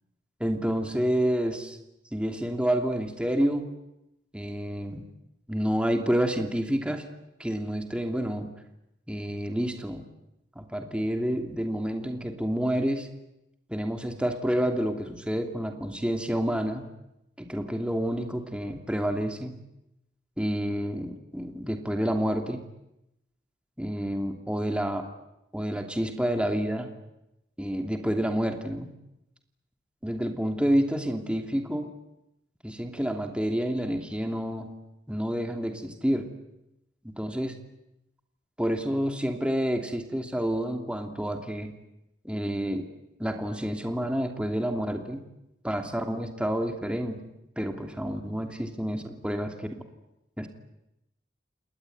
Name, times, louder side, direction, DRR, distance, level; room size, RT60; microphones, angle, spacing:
voice 1, 0.4-1.8 2.1-3.7 4.3-5.0 5.5-7.0 7.4-8.5 9.1-10.0 10.5-13.1 13.7-16.8 17.4-19.6 20.4-22.6 23.8-25.1 25.5-26.9 27.6-28.9 30.0-31.9 32.6-34.7 35.1-36.3 37.0-37.5 38.6-41.7 42.2-42.9 43.2-45.2 45.6-47.3 47.6-49.7 50.4-50.5, equal, 5° right, 4 dB, 2.9 m, -29 dB
29.0 x 19.5 x 9.5 m, 0.88 s
head